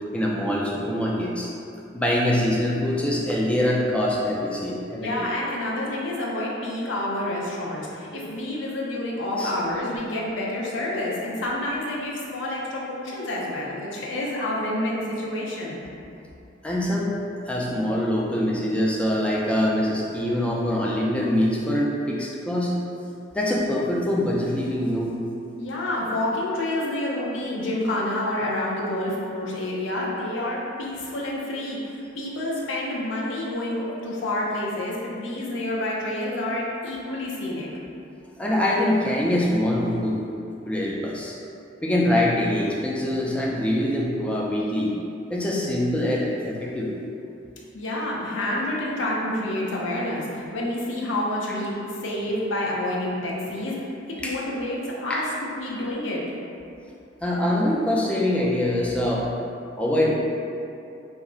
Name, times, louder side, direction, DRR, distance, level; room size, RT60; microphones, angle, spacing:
voice 1, 0.1-1.5 1.9-5.1 9.4-9.5 16.6-17.2 17.4-22.8 23.3-25.2 38.4-40.2 40.7-41.4 41.8-45.0 45.3-46.9 54.2-54.3 55.1-55.2 57.2-59.2 59.8-60.1, left 1 dB, 5° left, -4 dB, 0.3 m, -24 dB
voice 2, 4.9-15.8 25.6-37.7 47.7-53.8 54.1-56.2, left 1 dB, 75° left, -4 dB, 0.5 m, -28 dB
2.4 x 2.0 x 3.7 m, 2.6 s
head